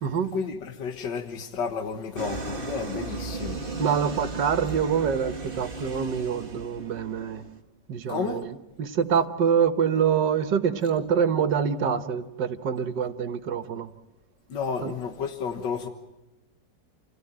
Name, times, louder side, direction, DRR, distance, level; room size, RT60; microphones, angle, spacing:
voice 1, 0.3-3.6 8.1-8.4 14.5-15.9, left 6 dB, 80° left, 2.1 m, -31 dB
sound 1, 2.2-7.6, right 3 dB, 30° right, 1.9 m, -35 dB
voice 2, 3.8-7.4 7.9-13.9 14.8-14.9, right 7 dB, 75° right, 1.9 m, -25 dB
29.0 x 16.5 x 9.0 m
omnidirectional pair, 1.9 m